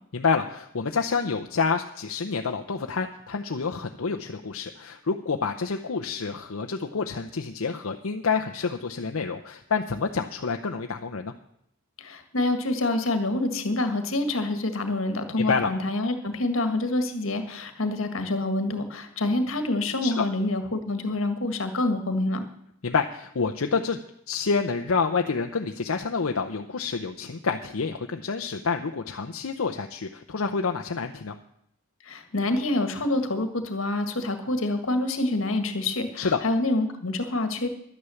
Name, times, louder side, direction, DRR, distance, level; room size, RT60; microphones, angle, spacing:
voice 1, 0.1-11.3 15.4-15.7 20.0-20.2 22.8-24.0 24.3-31.4 36.2-36.4, left 5 dB, 90° left, 4 dB, 0.7 m, -28 dB
voice 2, 12.0-22.5 32.0-37.7, left 2 dB, 70° left, 7 dB, 1.7 m, -27 dB
11.5 x 9.8 x 7.1 m, 0.73 s
head